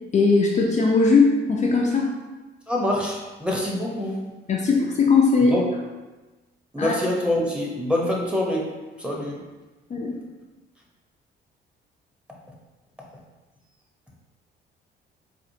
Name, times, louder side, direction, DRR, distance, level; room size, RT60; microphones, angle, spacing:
voice 1, 0.1-2.1 4.5-5.6 6.8-7.0 9.9-10.1, left 4 dB, 35° left, -2 dB, 0.5 m, -19 dB
voice 2, 2.7-4.2 5.4-5.6 6.7-9.5, left 1 dB, 5° right, -3 dB, 0.8 m, -26 dB
4.3 x 2.4 x 2.7 m, 1.2 s
cardioid pair, 90°, 20 cm